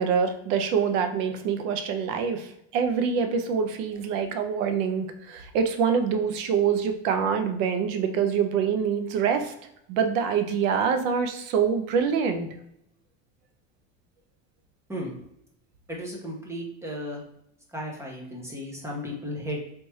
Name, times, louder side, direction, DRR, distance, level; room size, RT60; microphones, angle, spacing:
voice 1, 0.0-9.5 9.9-12.5, right 6 dB, 85° right, 7 dB, 0.7 m, -25 dB
voice 2, 15.9-17.2 17.7-19.6, equal, 5° right, -1 dB, 0.5 m, -34 dB
3.4 x 3.1 x 3.0 m, 0.76 s
cardioid pair, 155°, 38 cm